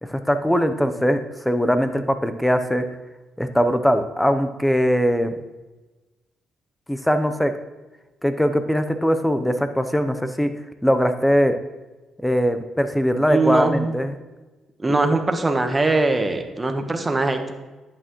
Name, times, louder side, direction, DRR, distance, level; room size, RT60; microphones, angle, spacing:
voice 1, 0.1-2.8 3.4-5.4 6.9-7.5 8.2-10.5 10.8-11.5 12.2-14.1, equal, 5° left, 9 dB, 0.7 m, -21 dB
voice 2, 13.3-14.0 14.8-17.5, right 2 dB, 20° right, 6 dB, 1.1 m, -21 dB
11.0 x 8.8 x 3.1 m, 1.2 s
cardioid pair, 90°, 0 cm